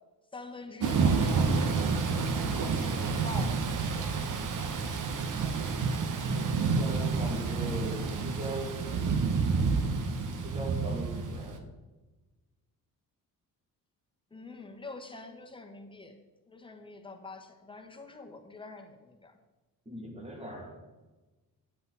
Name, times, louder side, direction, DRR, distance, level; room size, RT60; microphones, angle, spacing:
voice 1, 0.3-1.6 2.4-4.1 14.3-16.2 16.5-19.3, left 3 dB, 15° left, 3 dB, 1.3 m, -45 dB
Thunder / Rain, 0.8-11.6, right 4 dB, 55° right, 1.1 m, -29 dB
voice 2, 6.4-9.2 10.4-11.7 19.9-20.8, right 1 dB, 15° right, 1 dB, 2.3 m, -40 dB
10.0 x 7.9 x 4.1 m, 1.2 s
cardioid pair, 110°, 37 cm